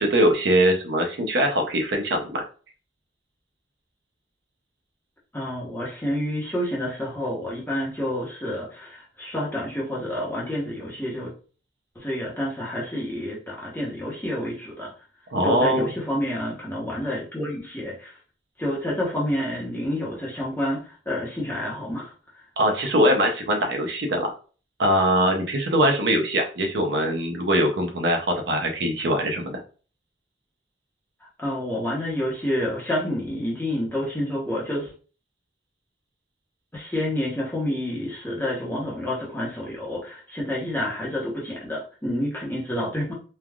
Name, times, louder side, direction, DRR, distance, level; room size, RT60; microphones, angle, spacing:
voice 1, 0.0-2.4 15.3-16.0 22.6-24.3 24.8-29.6, equal, 65° right, 3 dB, 0.6 m, -22 dB
voice 2, 5.3-11.3 12.0-14.9 15.4-18.1 18.6-22.1 31.4-34.9 36.7-43.1, left 1 dB, 10° left, -4 dB, 0.8 m, -29 dB
3.3 x 2.3 x 2.3 m, 0.38 s
head